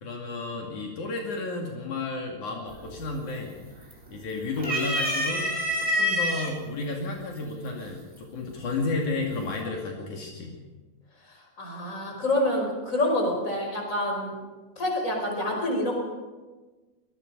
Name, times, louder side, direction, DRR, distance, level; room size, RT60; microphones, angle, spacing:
voice 1, 0.0-3.6 4.1-5.4 5.8-10.6, left 3 dB, 70° left, 0 dB, 3.9 m, -32 dB
sound 1, 2.7-3.1 3.5-4.2 4.6-6.5 7.4-7.5 8.7-9.2, left 1 dB, 20° right, 4.1 m, -27 dB
voice 2, 11.3-14.3 14.8-15.9, left 1 dB, 25° left, 1 dB, 5.6 m, -27 dB
25.0 x 20.0 x 5.5 m, 1.3 s
omnidirectional pair, 3.6 m